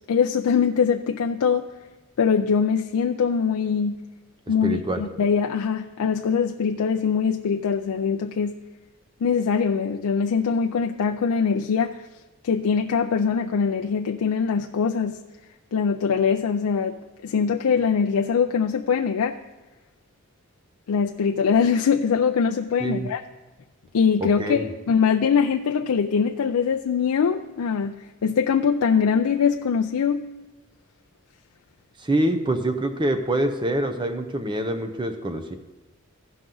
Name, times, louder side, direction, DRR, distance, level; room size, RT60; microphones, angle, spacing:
voice 1, 0.1-1.7 2.2-4.0 4.5-8.6 9.2-12.1 12.4-15.2 15.7-17.0 17.2-19.4 20.9-23.2 23.9-28.0 28.2-30.3, left 6 dB, 85° left, 4 dB, 0.4 m, -22 dB
voice 2, 4.6-5.0 22.8-23.1 24.2-24.7 32.0-35.6, right 1 dB, 20° right, 7 dB, 0.7 m, -25 dB
15.5 x 6.0 x 3.8 m, 1.2 s
head